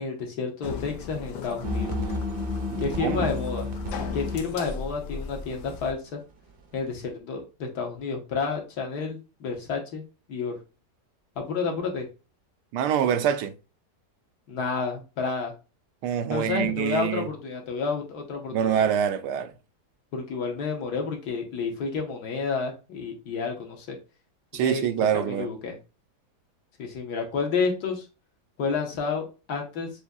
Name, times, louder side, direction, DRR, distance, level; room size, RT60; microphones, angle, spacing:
voice 1, 0.0-2.0 2.8-3.7 4.1-6.2 6.7-10.0 10.3-10.6 11.3-12.1 14.5-15.5 16.3-18.9 20.1-24.0 24.5-24.9 25.1-25.8 26.8-28.1 28.6-29.9, left 5 dB, 75° left, 1.6 m, -30 dB
sound 1, 0.6-5.9, left 5 dB, 90° left, 1.3 m, -39 dB
sound 2, 1.6-4.4, left 2 dB, 50° right, 0.7 m, -30 dB
voice 2, 2.7-3.3 12.7-13.5 16.0-17.3 18.5-19.5 24.5-25.5, right 9 dB, 85° right, 1.2 m, -25 dB
6.7 x 2.7 x 2.3 m
omnidirectional pair, 1.8 m